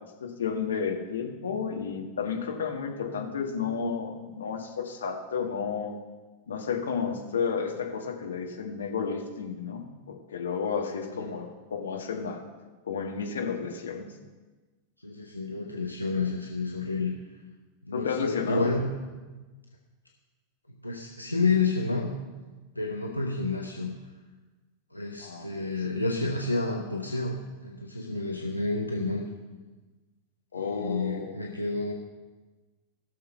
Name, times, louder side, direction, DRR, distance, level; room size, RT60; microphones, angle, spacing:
voice 1, 0.2-5.9 6.5-12.4 12.8-14.0 17.9-18.7 25.2-25.7 30.5-31.3, left 6 dB, 65° left, 2 dB, 1.7 m, -32 dB
voice 2, 10.9-11.3 15.0-17.2 17.8-18.9 20.7-22.1 22.7-23.9 24.9-29.3 30.5-31.9, left 3 dB, 85° left, -1 dB, 1.0 m, -30 dB
15.5 x 6.8 x 5.5 m, 1.2 s
figure-of-eight pair, 90°, 0 cm